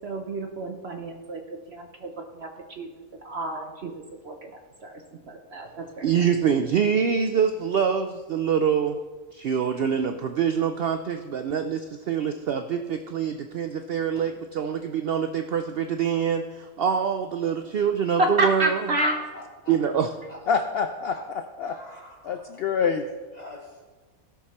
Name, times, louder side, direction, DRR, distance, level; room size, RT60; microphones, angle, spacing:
voice 1, 0.0-1.4 1.7-2.1 2.4-2.9 3.2-3.9 4.2-4.5 4.8-5.0 5.3-6.1 18.2-19.2, right 1 dB, 50° right, 3 dB, 0.9 m, -29 dB
voice 2, 6.0-9.0 9.3-18.9 19.7-20.1, right 7 dB, 75° right, 7 dB, 0.5 m, -25 dB
voice 3, 19.0-19.7 20.3-20.4 21.0-21.2 21.6-22.6 23.3-23.7, left 1 dB, 25° left, -4 dB, 2.7 m, -44 dB
voice 4, 20.5-21.8 22.2-23.0, left 6 dB, 70° left, 7 dB, 0.6 m, -26 dB
16.0 x 6.2 x 4.2 m, 1.3 s
omnidirectional pair, 1.6 m